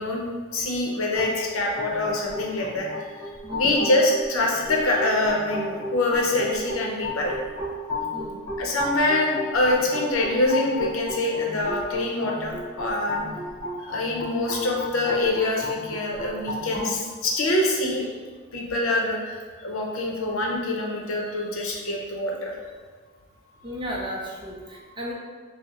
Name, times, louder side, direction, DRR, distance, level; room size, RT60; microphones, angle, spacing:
voice 1, 0.0-2.9 3.5-7.3 8.6-13.2 13.8-18.1 18.5-22.5, left 2 dB, 75° left, -1 dB, 0.6 m, -25 dB
sound 1, 1.2-16.9, left 1 dB, ahead, 1.4 m, -34 dB
voice 2, 3.4-3.8 8.1-8.5 23.6-25.1, equal, 20° right, -3 dB, 0.5 m, -34 dB
5.8 x 2.0 x 2.3 m, 1.5 s
head